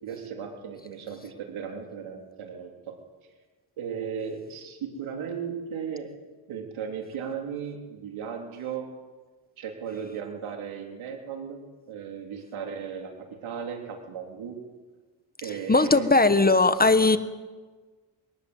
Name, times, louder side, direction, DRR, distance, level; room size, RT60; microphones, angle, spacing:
voice 1, 0.0-3.3 3.8-6.2 6.5-8.9 9.6-14.6 15.4-16.1, right 7 dB, 85° right, 3.9 m, -36 dB
voice 2, 15.7-17.2, left 3 dB, 20° left, 1.4 m, -19 dB
22.5 x 18.5 x 8.2 m
cardioid pair, 85°, 47 cm